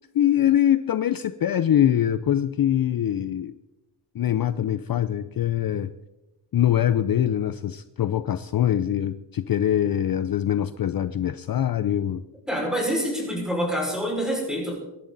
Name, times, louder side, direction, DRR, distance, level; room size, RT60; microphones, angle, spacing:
voice 1, 0.1-3.5 4.1-5.9 6.5-12.2, left 10 dB, 55° left, 12 dB, 0.5 m, -23 dB
voice 2, 12.5-14.8, equal, ahead, -2 dB, 5.3 m, -26 dB
22.5 x 11.5 x 4.0 m, 0.99 s
wide cardioid pair, 180°, 43 cm